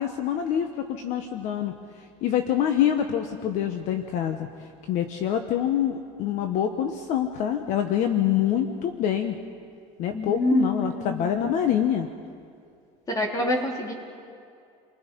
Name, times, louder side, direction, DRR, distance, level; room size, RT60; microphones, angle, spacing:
voice 1, 0.0-1.7 2.2-4.5 4.9-9.3 10.0-12.1, left 10 dB, 60° left, 6 dB, 1.3 m, -25 dB
voice 2, 10.1-11.4 13.1-13.9, left 1 dB, 25° left, 0 dB, 3.7 m, -26 dB
29.5 x 20.5 x 5.5 m, 2.4 s
cardioid pair, 125°, 14 cm